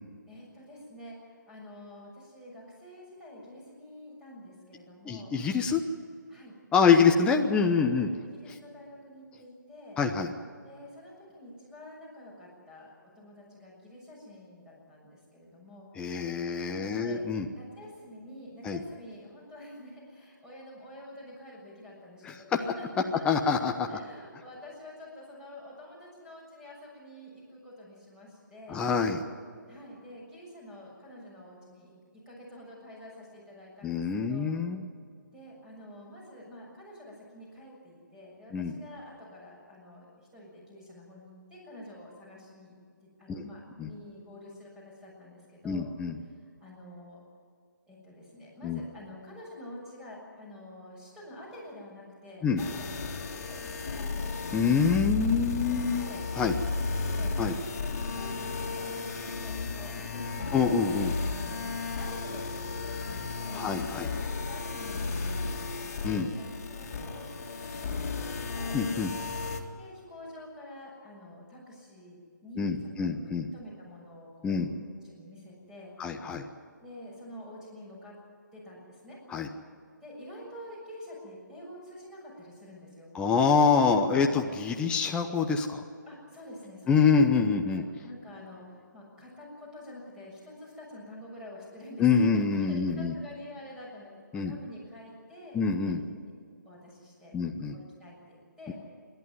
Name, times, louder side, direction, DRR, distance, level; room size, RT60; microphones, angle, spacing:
voice 1, 0.3-1.2 1.5-5.3 6.3-7.2 7.9-10.0 10.6-15.9 16.7-17.3 17.5-28.8 29.7-31.9 32.2-34.0 34.3-34.5 35.3-45.9 46.6-47.2 47.9-52.9 53.3-54.3 54.8-56.2 56.5-57.3 57.8-60.8 61.0-68.8 69.8-73.1 73.5-75.9 76.8-78.1 78.5-79.2 80.0-83.1 83.9-84.0 86.0-87.3 87.7-92.1 92.3-96.3 96.6-97.3 97.6-98.7, left 1 dB, 5° right, -3 dB, 6.8 m, -48 dB
voice 2, 5.1-5.8 6.7-8.1 10.0-10.3 16.0-17.5 18.6-18.8 22.2-22.3 23.2-24.0 28.7-29.2 33.8-34.8 38.5-38.7 43.3-43.4 43.8-43.9 45.6-46.2 48.6-48.8 52.4-52.6 54.5-56.1 56.4-56.5 57.4-57.5 60.5-61.1 63.5-64.1 66.0-66.3 68.7-69.1 72.6-73.5 74.4-74.7 76.0-76.4 79.3-79.5 83.1-85.8 86.9-87.8 92.0-93.1 94.3-94.5 95.5-96.0 97.3-97.8 98.7-98.8, left 5 dB, 10° left, 3 dB, 0.9 m, -25 dB
sound 1, 52.6-69.6, left 4 dB, 50° left, 2.4 m, -34 dB
27.5 x 11.5 x 9.5 m, 2.1 s
figure-of-eight pair, 145°, 10 cm